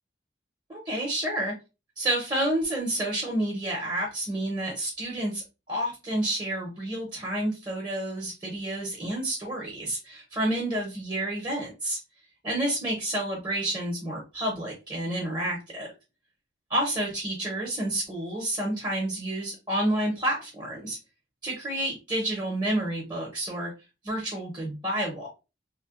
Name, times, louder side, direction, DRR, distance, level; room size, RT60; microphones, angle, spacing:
voice 1, 0.7-1.5 2.0-12.0 12.4-15.9 16.7-21.0 21.4-23.7 24.0-25.3, right 1 dB, 20° right, -3 dB, 0.8 m, -29 dB
3.1 x 2.2 x 2.4 m, 0.27 s
head